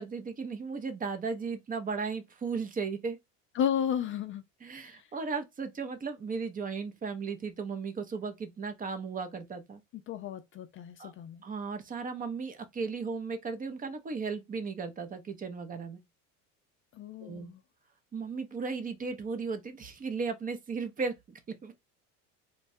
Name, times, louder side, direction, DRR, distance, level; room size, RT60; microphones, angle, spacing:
voice 1, 0.0-3.2 4.6-9.8 11.0-11.1 11.4-16.0 17.2-17.5 18.1-21.7, right 5 dB, 25° right, 0.6 m, -36 dB
voice 2, 3.6-4.4 4.9-5.0 9.9-11.4 16.9-17.6, left 9 dB, 35° left, 0.4 m, -33 dB
3.1 x 2.2 x 2.6 m
supercardioid pair, 110°, 35 cm